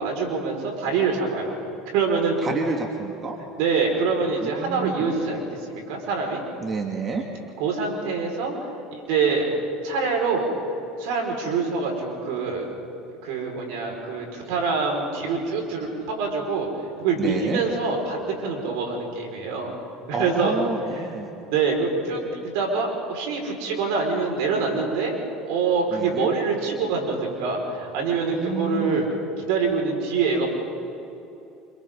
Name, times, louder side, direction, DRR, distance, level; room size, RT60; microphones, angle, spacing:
voice 1, 0.0-1.6 1.9-2.4 3.6-6.4 7.6-8.6 9.1-9.5 9.8-10.5 11.0-12.6 13.2-16.7 17.0-19.7 20.2-20.5 20.9-21.1 21.5-29.0 29.5-30.6, right 4 dB, 75° right, 1 dB, 5.1 m, -25 dB
voice 2, 2.4-3.4 4.4-5.1 6.6-7.2 17.2-17.6 20.1-21.3 25.9-26.3 28.3-29.1, right 4 dB, 35° right, 1 dB, 2.5 m, -29 dB
29.5 x 26.0 x 3.9 m, 2.9 s
hypercardioid pair, 80°, 0 cm